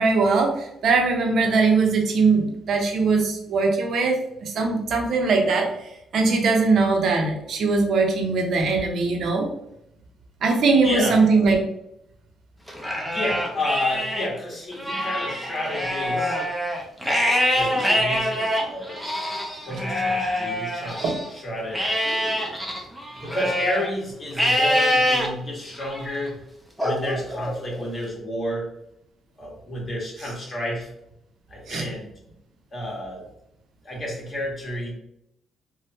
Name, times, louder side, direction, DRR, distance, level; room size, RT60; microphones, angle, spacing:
voice 1, 0.0-5.7 6.1-9.5 10.4-11.6 21.0-21.1 31.7-31.8, right 4 dB, 65° right, 2 dB, 0.6 m, -21 dB
voice 2, 10.8-11.2 13.0-16.4 17.0-19.0 19.7-21.8 22.5-22.6 23.2-26.4 26.8-28.7 29.4-30.9 31.5-32.1 32.7-33.3 33.8-34.9, left 1 dB, 35° left, -3 dB, 1.3 m, -31 dB
Livestock farm animals working animals, 12.7-14.3 14.7-21.3 21.7-23.9 24.3-25.3 25.8-26.2 26.8-27.9, equal, ahead, 0.6 m, -25 dB
3.3 x 2.2 x 2.7 m, 0.81 s
cardioid pair, 90°, 0 cm